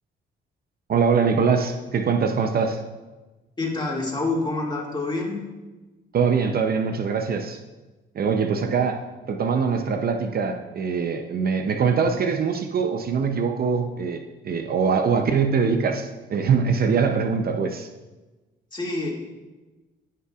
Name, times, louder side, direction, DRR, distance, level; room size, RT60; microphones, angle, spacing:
voice 1, 0.9-2.8 6.1-7.6 8.1-17.9, right 5 dB, 50° right, 6 dB, 0.6 m, -23 dB
voice 2, 3.6-5.4 18.7-19.1, left 2 dB, 25° left, -2 dB, 2.1 m, -27 dB
14.5 x 5.6 x 2.4 m, 1.2 s
cardioid pair, 90°, 20 cm